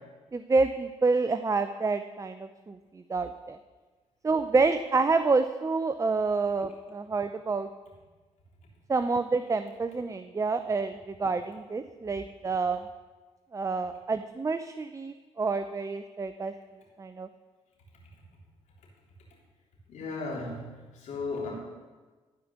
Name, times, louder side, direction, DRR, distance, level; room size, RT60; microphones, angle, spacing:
voice 1, 0.3-3.6 4.2-7.7 8.9-12.8 13.5-16.5 17.0-17.3, right 4 dB, 25° right, 10 dB, 0.5 m, -28 dB
voice 2, 19.9-21.5, left 3 dB, 70° left, -4 dB, 3.5 m, -35 dB
14.0 x 5.0 x 7.1 m, 1.3 s
supercardioid pair, 55°, 13 cm